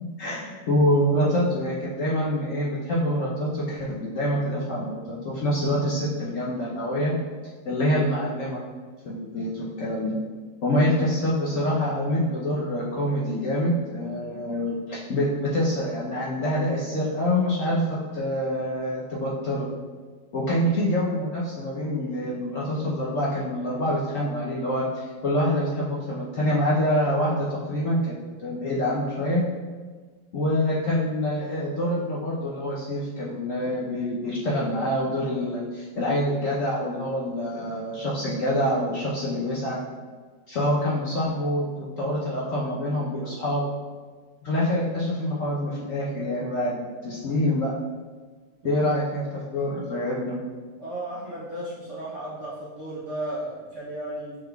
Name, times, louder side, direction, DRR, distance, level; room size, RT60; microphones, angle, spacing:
voice 1, 0.2-7.1 7.6-8.6 9.0-10.1 10.6-19.6 20.3-29.4 30.3-39.8 40.5-43.6 44.4-47.7 48.6-50.4, left 1 dB, 60° left, -6 dB, 0.9 m, -26 dB
voice 2, 50.8-54.4, right 1 dB, 60° right, -7 dB, 0.8 m, -34 dB
6.7 x 3.5 x 2.2 m, 1.5 s
omnidirectional pair, 2.0 m